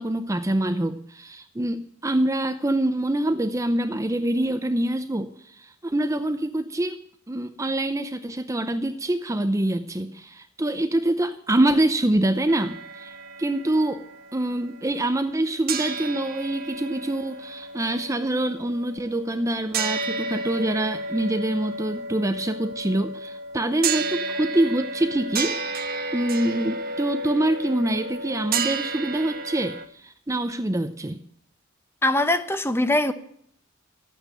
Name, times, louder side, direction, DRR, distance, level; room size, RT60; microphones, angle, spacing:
voice 1, 0.0-14.0 14.3-25.6 26.1-31.2, right 1 dB, 15° right, 0.6 m, -25 dB
sound 1, 12.5-15.4 15.7-29.8, right 3 dB, 45° right, 1.2 m, -32 dB
voice 2, 32.0-33.1, left 1 dB, 10° left, 0.8 m, -22 dB
12.5 x 9.0 x 9.0 m
head